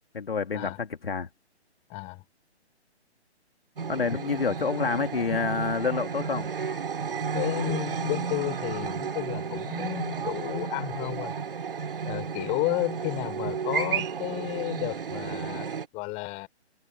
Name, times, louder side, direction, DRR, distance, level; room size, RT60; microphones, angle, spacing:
voice 1, 0.1-1.3 3.9-6.5, left 5 dB, 55° left, 2.5 m, -28 dB
voice 2, 1.9-2.2 7.3-11.3 12.0-16.5, left 25 dB, 20° left, 4.8 m, -32 dB
sound 1, 3.8-15.9, right 6 dB, 50° right, 2.8 m, -32 dB
figure-of-eight pair, 135°, 34 cm